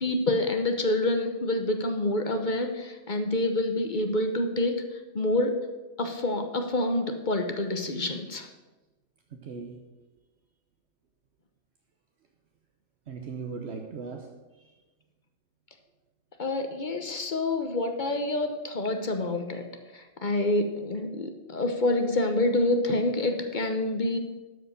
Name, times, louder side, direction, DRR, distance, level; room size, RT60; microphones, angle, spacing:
voice 1, 0.0-4.7 5.1-5.5 6.0-8.5 16.4-19.6 19.9-24.2, left 2 dB, 45° left, 5 dB, 1.0 m, -27 dB
voice 2, 9.3-9.8 13.1-14.7, right 5 dB, 70° right, 2 dB, 1.2 m, -39 dB
12.0 x 5.0 x 6.6 m, 1.2 s
omnidirectional pair, 1.2 m